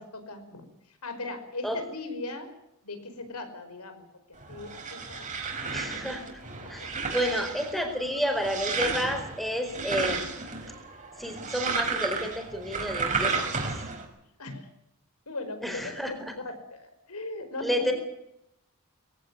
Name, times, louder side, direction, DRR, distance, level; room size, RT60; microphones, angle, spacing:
voice 1, 0.0-2.5 2.8-5.3 5.7-6.0 6.6-6.9 14.4-14.7 15.3-17.9, left 2 dB, 85° left, 8 dB, 5.2 m, -39 dB
sound 1, 4.4-14.0, right 4 dB, 35° right, 4.9 m, -33 dB
voice 2, 5.7-6.2 6.7-10.3 11.2-13.5 15.6-16.1 17.6-17.9, equal, ahead, 5 dB, 4.5 m, -30 dB
22.0 x 16.5 x 9.7 m, 0.81 s
head